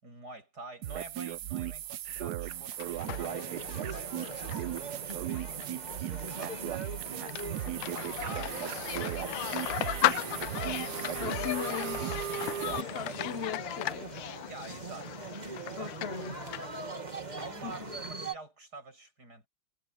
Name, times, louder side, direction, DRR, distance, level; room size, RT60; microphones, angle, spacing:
voice 1, 0.0-5.6 6.2-7.0 7.6-9.4 10.0-12.9 14.5-15.3 15.6-15.9 17.4-19.5, right 2 dB, 45° right, 8.6 m, -48 dB
sound 1, 0.8-12.8, right 13 dB, 75° right, 0.9 m, -37 dB
sound 2, 2.5-16.7, left 16 dB, 75° left, 1.1 m, -37 dB
sound 3, 3.0-18.4, right 3 dB, 20° right, 2.2 m, -42 dB
voice 2, 11.2-12.4 12.8-14.4 15.8-16.4 17.6-18.1, left 7 dB, 45° left, 0.8 m, -39 dB
omnidirectional pair, 2.4 m